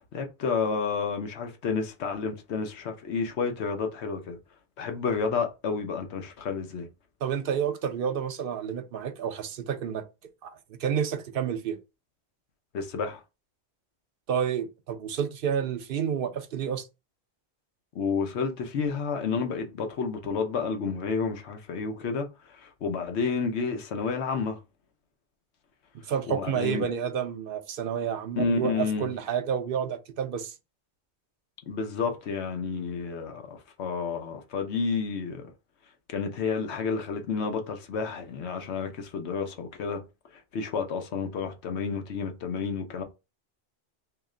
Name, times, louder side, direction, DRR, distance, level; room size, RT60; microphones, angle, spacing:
voice 1, 0.0-4.4 4.8-6.9 12.7-13.2 17.9-24.6 26.3-26.8 28.4-29.1 31.7-35.5 36.1-40.0 40.5-43.0, left 5 dB, 80° left, 1.0 m, -30 dB
voice 2, 7.2-10.0 10.4-11.8 14.3-16.9 26.1-30.5, right 8 dB, 60° right, 0.7 m, -30 dB
3.1 x 2.9 x 3.6 m
omnidirectional pair, 1.1 m